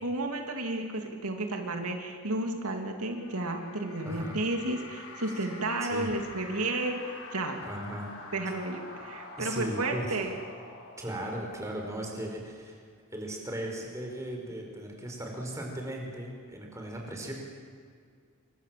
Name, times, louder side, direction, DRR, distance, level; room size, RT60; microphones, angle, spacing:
voice 1, 0.0-7.6 8.3-10.3, right 2 dB, 85° right, 3 dB, 2.8 m, -32 dB
sound 1, 3.0-12.7, left 3 dB, 85° left, 7.0 m, -47 dB
voice 2, 4.0-4.4 5.9-6.1 7.6-8.1 9.4-10.2 11.0-12.8 13.1-17.3, right 1 dB, 15° right, 0 dB, 5.0 m, -37 dB
28.0 x 23.5 x 7.7 m, 2.2 s
head